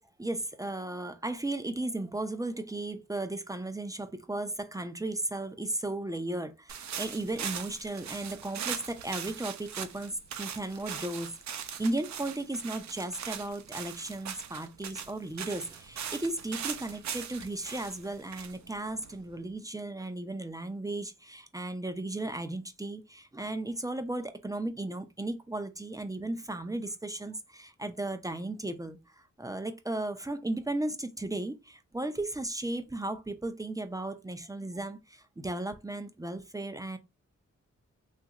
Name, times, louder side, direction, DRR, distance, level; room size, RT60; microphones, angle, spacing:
voice 1, 0.2-29.0 29.4-35.0 35.4-37.0, right 2 dB, 10° right, 0.4 m, -35 dB
sound 1, 6.7-19.5, right 8 dB, 70° right, 0.5 m, -40 dB
3.0 x 2.4 x 2.8 m
cardioid pair, 65°, 29 cm